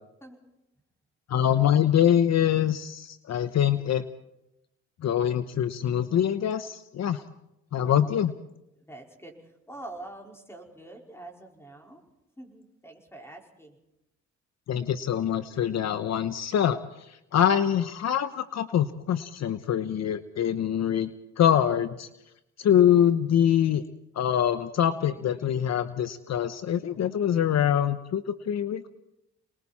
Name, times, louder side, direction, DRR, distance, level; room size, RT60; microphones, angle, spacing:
voice 1, 1.3-4.0 5.0-7.2 7.7-8.3 14.7-16.8 17.3-21.1 21.4-22.1 22.6-23.8 24.1-28.9, left 9 dB, 60° left, 11 dB, 1.0 m, -24 dB
voice 2, 7.8-8.2 8.8-12.0 12.4-13.8, right 2 dB, 10° left, 1 dB, 4.8 m, -45 dB
29.0 x 21.0 x 4.3 m, 0.85 s
cardioid pair, 90°, 30 cm